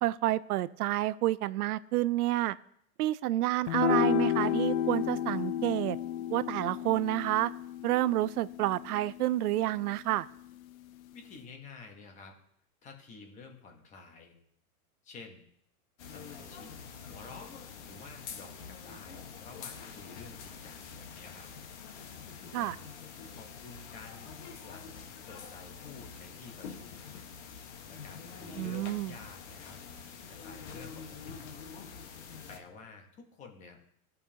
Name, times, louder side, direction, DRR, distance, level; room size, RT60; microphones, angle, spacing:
voice 1, 0.0-2.6 3.0-6.0 6.3-7.5 7.8-10.3 22.5-22.8 28.6-29.1, right 15 dB, 80° right, 17 dB, 0.5 m, -29 dB
sound 1, 3.7-10.2, left 11 dB, 65° left, 0.6 m, -32 dB
voice 2, 11.1-12.3 12.8-14.4 15.0-15.4 16.0-16.7 17.1-17.6 17.9-21.5 22.4-22.9 23.3-24.3 24.6-27.1 27.9-29.8 30.3-31.4 32.5-33.9, left 4 dB, 15° left, 3 dB, 1.0 m, -51 dB
sound 2, 16.0-32.6, left 6 dB, 50° left, 1.2 m, -46 dB
16.0 x 5.4 x 2.8 m, 0.71 s
supercardioid pair, 165°, 44 cm